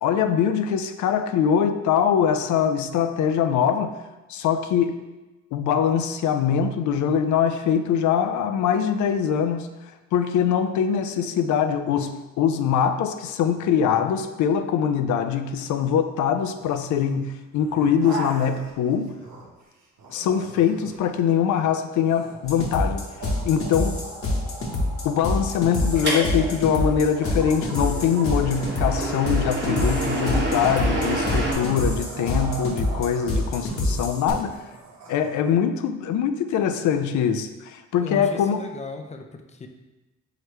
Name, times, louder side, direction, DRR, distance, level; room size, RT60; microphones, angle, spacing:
voice 1, 0.0-3.9 4.3-5.0 5.5-12.1 12.4-19.1 20.1-23.0 23.4-24.0 25.0-34.6 35.1-38.6, left 8 dB, 75° left, 8 dB, 0.5 m, -23 dB
sound 1, 16.6-17.0 17.5-19.6 20.0-35.6, right 3 dB, 65° right, 1.1 m, -39 dB
sound 2, 22.4-34.3, left 1 dB, 45° left, 1.0 m, -26 dB
sound 3, 26.0-31.5, right 1 dB, 35° right, 1.0 m, -29 dB
voice 2, 38.0-39.7, left 3 dB, 25° left, 5 dB, 0.5 m, -35 dB
4.8 x 3.2 x 3.1 m, 1.1 s
cardioid pair, 90°, 30 cm